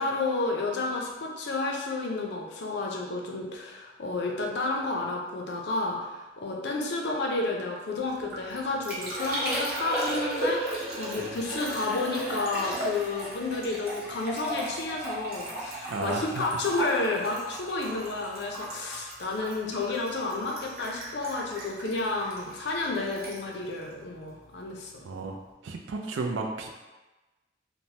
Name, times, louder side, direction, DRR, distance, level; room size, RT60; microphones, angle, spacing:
voice 1, 0.0-25.0, left 3 dB, 60° left, 0 dB, 0.4 m, -31 dB
Liquid, 8.1-24.7 25.0-25.5, right 1 dB, 50° right, 0.7 m, -36 dB
voice 2, 15.9-16.4 25.0-25.4 25.6-26.7, right 3 dB, 80° right, 2 dB, 0.4 m, -33 dB
3.1 x 2.1 x 2.7 m, 1.2 s
head